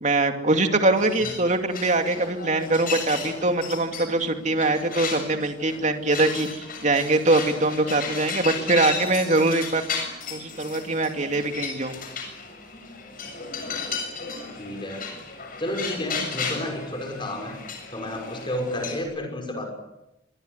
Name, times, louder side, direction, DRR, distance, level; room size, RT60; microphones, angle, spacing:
voice 1, 0.0-9.8 10.3-11.9, right 2 dB, 40° right, 5 dB, 2.6 m, -23 dB
sound 1, 1.0-19.0, left 5 dB, 50° left, 7.2 m, -35 dB
voice 2, 14.6-15.1 15.6-17.6 17.9-19.7, left 1 dB, 25° left, 4 dB, 6.0 m, -31 dB
26.5 x 23.0 x 8.2 m, 0.93 s
head